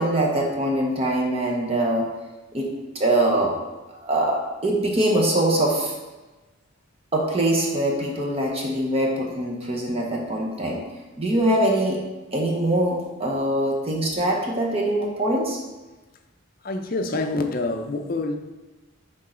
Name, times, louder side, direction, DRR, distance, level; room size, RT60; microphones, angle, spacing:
voice 1, 0.0-2.1 2.5-2.7 2.9-3.5 4.0-5.9 7.1-10.8 11.2-12.0 12.3-15.6, right 1 dB, 25° right, -1 dB, 0.8 m, -23 dB
voice 2, 16.6-18.4, left 2 dB, 40° left, 5 dB, 0.5 m, -26 dB
6.2 x 3.8 x 4.3 m, 1.2 s
head